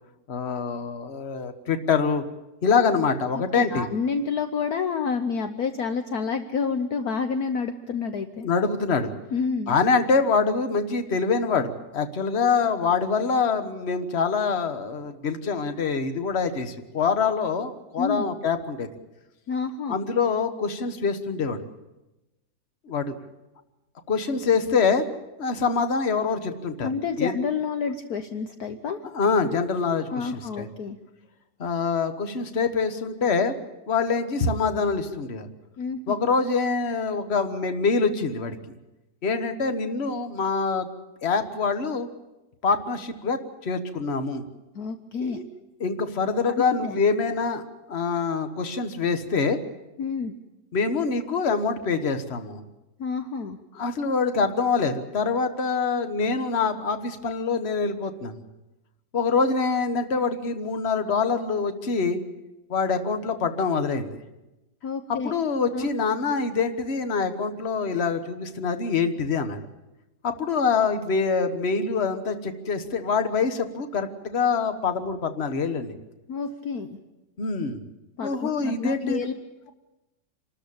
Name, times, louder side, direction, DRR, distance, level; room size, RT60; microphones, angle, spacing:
voice 1, 0.3-2.2 2.6-3.9 8.4-9.1 9.7-18.9 19.9-21.6 22.9-23.2 24.1-25.0 25.4-26.9 27.2-27.4 29.1-30.7 31.6-33.5 33.9-35.5 36.1-38.6 39.2-40.9 41.2-42.1 42.6-44.5 45.2-45.4 45.8-47.6 47.9-49.6 50.7-52.6 53.7-58.4 59.1-62.2 62.7-64.2 65.2-69.6 70.2-75.9 77.4-77.8 78.2-79.2, left 5 dB, 40° left, 8 dB, 1.5 m, -25 dB
voice 2, 3.5-8.5 9.3-9.8 18.0-18.2 19.5-20.0 26.8-29.0 30.1-31.0 35.8-36.2 44.7-45.4 46.6-47.0 50.0-50.3 53.0-53.6 64.8-65.4 65.7-65.9 76.3-77.0 78.2-79.3, left 5 dB, 60° left, 7 dB, 1.3 m, -29 dB
26.5 x 13.5 x 8.6 m, 1.0 s
omnidirectional pair, 2.0 m